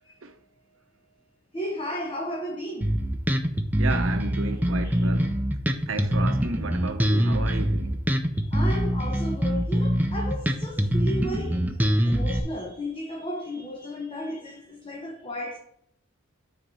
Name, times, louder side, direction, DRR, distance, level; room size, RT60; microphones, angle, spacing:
voice 1, 1.5-2.9 4.8-5.1 8.3-15.6, equal, 25° left, 0.8 m, -34 dB
Bass guitar, 2.8-12.4, equal, 10° right, 0.6 m, -24 dB
voice 2, 3.8-5.4 5.9-8.0, right 3 dB, 70° right, 0.7 m, -33 dB
6.5 x 4.1 x 6.2 m
head